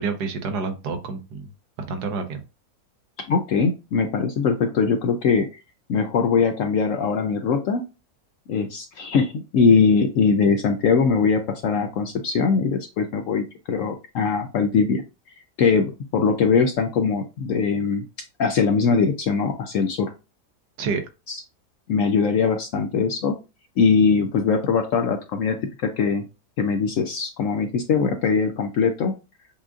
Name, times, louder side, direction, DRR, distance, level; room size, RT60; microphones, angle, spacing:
voice 1, 0.0-1.5 1.9-2.4 20.8-21.0, right 4 dB, 75° right, 7 dB, 1.3 m, -28 dB
voice 2, 3.3-5.5 5.9-7.8 8.5-15.0 15.6-18.0 18.4-20.1 21.3-21.4 21.9-23.3 23.8-25.6 25.8-26.2 26.6-29.1, left 5 dB, 70° left, 6 dB, 0.8 m, -21 dB
7.1 x 2.5 x 2.4 m, 0.29 s
omnidirectional pair, 1.8 m